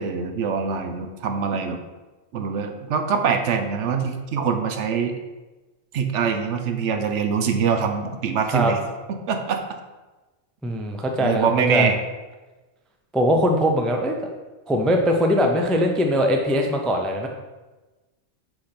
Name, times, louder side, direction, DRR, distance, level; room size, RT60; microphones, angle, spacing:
voice 1, 0.0-1.8 2.3-5.2 5.9-8.8 9.1-9.6 11.2-12.0, right 6 dB, 75° right, 5 dB, 1.0 m, -24 dB
voice 2, 10.6-11.9 13.1-14.2 14.7-17.3, equal, ahead, 2 dB, 0.3 m, -21 dB
6.2 x 3.3 x 5.7 m, 1.2 s
omnidirectional pair, 1.2 m